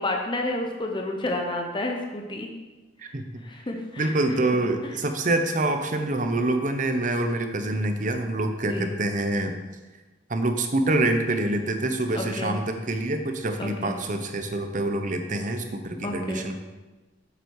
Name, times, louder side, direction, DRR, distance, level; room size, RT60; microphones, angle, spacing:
voice 1, 0.0-2.5 3.1-3.2 3.4-4.1 8.7-8.9 12.1-12.6 13.6-14.0 16.0-16.5, left 2 dB, 25° left, 2 dB, 0.8 m, -30 dB
voice 2, 4.0-9.5 10.3-16.6, right 2 dB, 45° right, 6 dB, 0.9 m, -26 dB
8.1 x 7.5 x 4.8 m, 1.2 s
head